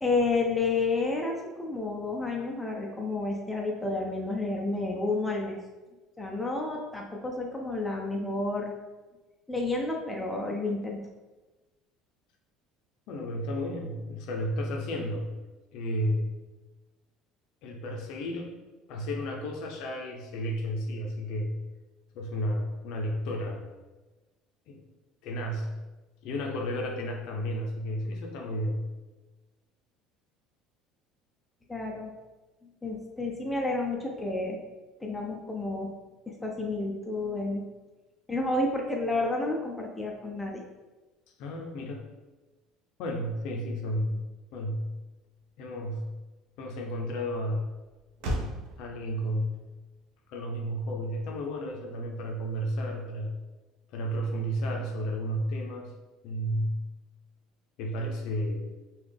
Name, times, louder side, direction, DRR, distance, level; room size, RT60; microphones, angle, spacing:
voice 1, 0.0-5.6 6.2-8.7 9.5-11.0 31.7-32.1 32.8-34.6 35.0-35.9 36.3-37.6 38.3-40.6, left 2 dB, 10° left, 0 dB, 0.5 m, -30 dB
voice 2, 13.1-15.4 15.7-16.4 17.6-18.5 18.9-21.6 22.1-23.7 24.7-24.8 25.2-25.8 26.2-28.9 41.4-42.1 43.0-44.2 44.5-45.0 45.6-46.1 46.6-47.7 48.8-49.7 50.3-53.3 53.9-55.9 56.2-56.8 57.8-58.7, equal, 65° left, 2 dB, 0.6 m, -32 dB
Motor vehicle (road), 44.4-52.8, equal, 80° right, 0.6 m, -42 dB
3.8 x 2.4 x 3.4 m, 1.2 s
cardioid pair, 140°, 0 cm